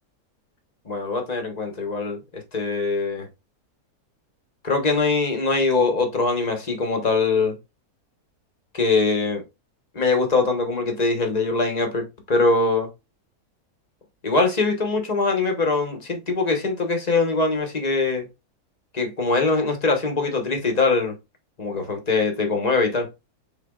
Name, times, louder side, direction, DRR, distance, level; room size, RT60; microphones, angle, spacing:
voice 1, 0.9-3.3 4.6-7.6 8.7-9.4 9.9-12.9 14.2-18.3 18.9-21.1 21.6-23.1, left 3 dB, 30° left, 0.9 m, -22 dB
5.7 x 3.9 x 2.3 m
omnidirectional pair, 1.7 m